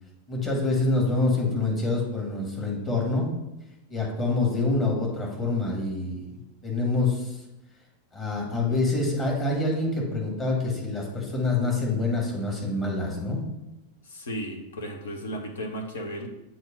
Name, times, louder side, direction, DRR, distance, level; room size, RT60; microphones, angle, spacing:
voice 1, 0.3-3.3 3.9-7.4 8.1-13.4, left 2 dB, 25° left, -2 dB, 2.1 m, -26 dB
voice 2, 14.0-16.3, equal, 65° left, 2 dB, 1.0 m, -34 dB
7.6 x 2.8 x 5.2 m, 0.92 s
figure-of-eight pair, 90°, 0 cm